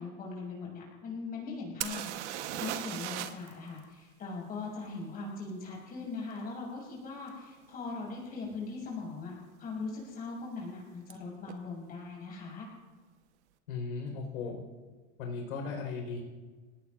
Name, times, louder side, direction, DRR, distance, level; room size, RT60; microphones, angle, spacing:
voice 1, 0.0-12.7, left 3 dB, 20° left, -3 dB, 6.1 m, -40 dB
sound 1, 1.8-3.5 3.8-3.9 7.3-7.4 8.0-8.2 8.5-9.1 11.1-11.2 11.5-11.6, right 12 dB, 55° right, 1.2 m, -37 dB
voice 2, 13.7-14.6 15.2-16.2, left 4 dB, 80° left, 1 dB, 4.5 m, -37 dB
28.0 x 18.0 x 2.5 m, 1.4 s
supercardioid pair, 160°, 41 cm